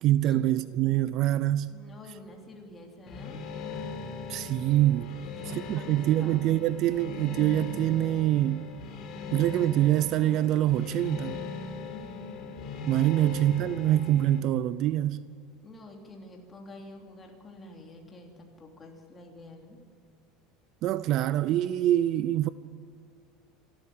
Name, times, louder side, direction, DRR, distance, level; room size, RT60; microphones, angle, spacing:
voice 1, 0.0-1.7 4.3-5.1 5.5-8.6 9.3-11.4 12.9-15.2 20.8-22.5, right 13 dB, 45° right, 0.5 m, -25 dB
voice 2, 1.7-3.4 5.2-6.4 11.9-12.6 13.1-13.3 15.6-19.8, left 2 dB, 15° left, 3.1 m, -48 dB
sound 1, 3.1-14.4, left 4 dB, 40° left, 2.6 m, -39 dB
26.0 x 12.5 x 8.7 m
cardioid pair, 165°, 0 cm